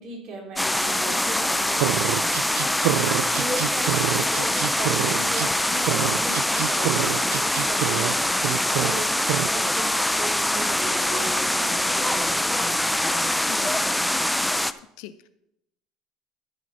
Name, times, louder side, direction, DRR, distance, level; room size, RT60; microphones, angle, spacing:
voice 1, 0.0-4.5 4.8-13.3, right 2 dB, 55° right, 0 dB, 3.3 m, -37 dB
sound 1, 0.6-14.7, left 1 dB, 5° left, 0.4 m, -24 dB
sound 2, 1.8-5.5 5.8-8.1 8.4-8.9 9.3-9.5, right 16 dB, 90° right, 0.3 m, -27 dB
voice 2, 13.5-14.0 15.0-15.3, left 13 dB, 80° left, 12 dB, 0.5 m, -41 dB
13.5 x 5.2 x 5.5 m, 0.79 s
cardioid pair, 120°, 0 cm